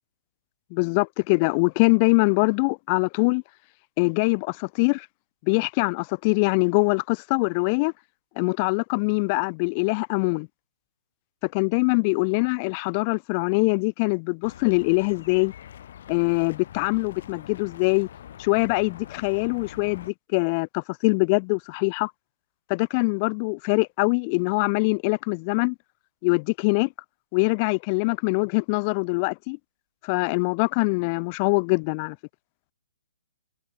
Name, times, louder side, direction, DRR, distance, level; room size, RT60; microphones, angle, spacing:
voice 1, 0.7-3.4 4.0-5.1 5.4-7.9 8.4-10.5 11.4-15.5 16.1-18.1 18.4-22.1 22.7-25.7 26.2-26.9 27.3-29.6 30.0-32.2, left 31 dB, 30° left, 1.0 m, -23 dB
sound 1, 14.4-20.1, left 10 dB, 55° left, 7.2 m, -44 dB
hypercardioid pair, 150°, 0 cm